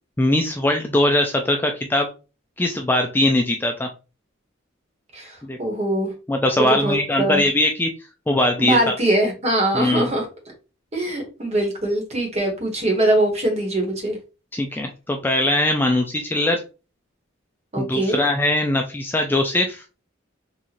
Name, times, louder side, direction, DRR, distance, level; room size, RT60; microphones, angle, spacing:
voice 1, 0.2-2.1 2.6-3.9 5.4-5.6 6.3-7.9 8.3-8.9 9.7-10.1 14.5-16.6 17.8-19.8, left 1 dB, 10° left, 0.3 m, -21 dB
voice 2, 5.1-6.1 6.6-7.5 8.6-10.3 10.9-14.2 17.7-18.2, right 1 dB, 35° right, 1.2 m, -22 dB
4.0 x 2.4 x 3.0 m
head